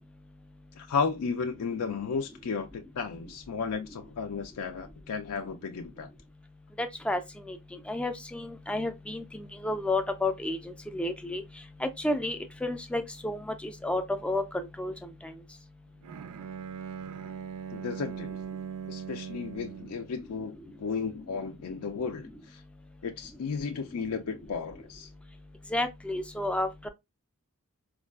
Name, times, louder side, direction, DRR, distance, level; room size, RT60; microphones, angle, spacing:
voice 1, 0.8-6.1 17.7-18.3 18.9-22.6 23.0-25.1, left 5 dB, 80° left, 0.4 m, -34 dB
voice 2, 6.8-7.2 7.5-7.6 7.9-11.4 11.8-14.9 15.2-15.3 25.7-26.9, left 2 dB, 5° left, 0.3 m, -31 dB
Bowed string instrument, 16.0-20.1, right 7 dB, 85° right, 0.4 m, -40 dB
4.4 x 2.4 x 2.3 m
head